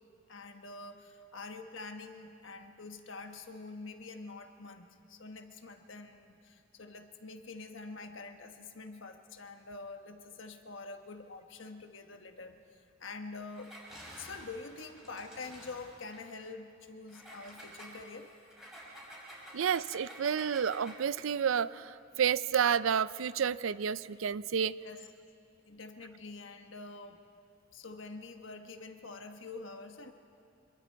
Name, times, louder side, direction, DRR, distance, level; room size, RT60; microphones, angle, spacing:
voice 1, 0.3-13.7 14.2-18.3 24.8-25.1 25.7-27.2 27.7-30.1, left 3 dB, 65° left, 6 dB, 1.3 m, -46 dB
Engine, 13.5-16.3 17.1-21.1, right 1 dB, ahead, 5.0 m, -50 dB
voice 2, 19.5-24.8, right 7 dB, 70° right, 17 dB, 0.4 m, -30 dB
25.5 x 23.0 x 4.7 m, 2.6 s
head